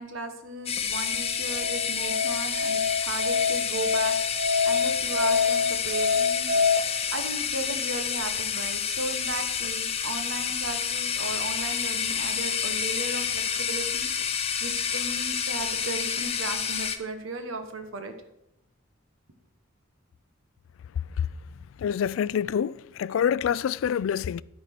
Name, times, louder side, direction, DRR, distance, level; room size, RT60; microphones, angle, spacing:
voice 1, 0.0-6.5 7.1-14.1 14.6-18.1, right 2 dB, 90° right, 1.3 m, -36 dB
sound 1, 0.7-17.0, left 7 dB, 30° left, 0.7 m, -29 dB
Musical instrument, 1.1-6.8, left 5 dB, 45° right, 1.1 m, -26 dB
voice 2, 21.8-24.4, left 8 dB, 75° left, 0.3 m, -26 dB
13.0 x 4.4 x 6.0 m
head